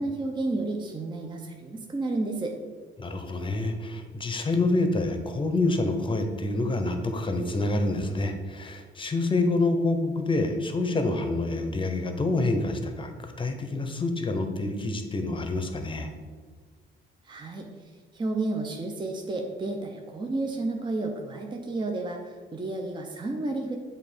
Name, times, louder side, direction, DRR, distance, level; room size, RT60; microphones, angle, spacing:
voice 1, 0.0-2.5 17.3-17.7 18.1-23.8, right 2 dB, 25° right, 2 dB, 0.6 m, -31 dB
voice 2, 3.0-16.1, left 2 dB, 25° left, 6 dB, 0.7 m, -27 dB
7.4 x 2.6 x 5.0 m, 1.5 s
cardioid pair, 90°, 20 cm